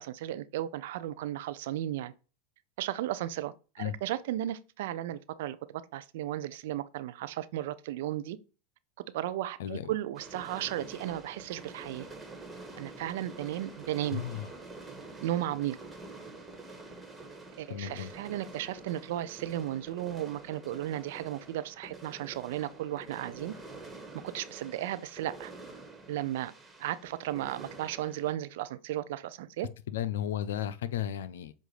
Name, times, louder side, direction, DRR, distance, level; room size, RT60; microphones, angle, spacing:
voice 1, 0.0-2.1 2.8-8.4 9.1-12.1 12.8-14.2 15.2-15.8 17.6-23.5 24.3-25.5 26.1-26.5 26.8-29.7, right 13 dB, 70° right, 0.5 m, -35 dB
voice 2, 9.6-9.9 14.1-14.5 17.7-18.1 29.9-31.5, left 11 dB, 75° left, 0.6 m, -34 dB
sound 1, 10.1-28.3, right 3 dB, 10° right, 1.7 m, -47 dB
7.5 x 2.6 x 4.9 m
hypercardioid pair, 100°, 0 cm